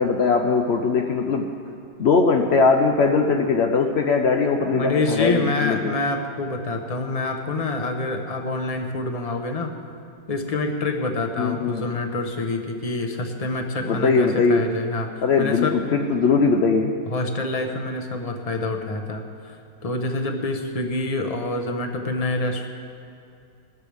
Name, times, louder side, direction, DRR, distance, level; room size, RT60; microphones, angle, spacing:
voice 1, 0.0-1.5 2.0-5.9 11.4-11.9 13.8-14.7 15.2-16.9, left 4 dB, 70° left, 3 dB, 0.6 m, -20 dB
voice 2, 4.7-9.7 10.3-15.8 17.1-19.6 19.8-22.7, left 2 dB, 30° left, 4 dB, 0.8 m, -26 dB
20.0 x 13.5 x 3.5 m, 2.5 s
omnidirectional pair, 1.9 m